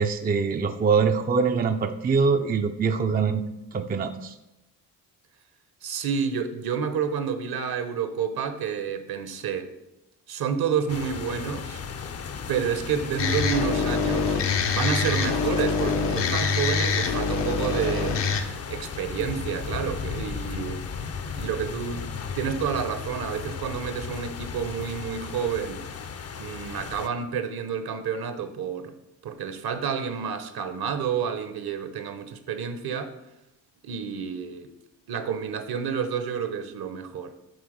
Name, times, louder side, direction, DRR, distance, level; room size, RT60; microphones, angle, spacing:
voice 1, 0.0-3.4 3.7-4.3, right 5 dB, 20° right, 0.4 m, -23 dB
voice 2, 5.8-9.7 10.3-11.8 12.5-14.4 14.7-18.2 18.7-20.8 21.3-25.8 26.4-28.9 29.2-33.2 33.8-34.7 35.1-37.4, right 7 dB, 55° right, 0.9 m, -29 dB
sound 1, 10.9-27.1, left 6 dB, 35° left, 0.6 m, -36 dB
sound 2, 13.2-18.4, left 5 dB, 70° left, 0.9 m, -25 dB
8.1 x 3.5 x 5.0 m
supercardioid pair, 55°, 44 cm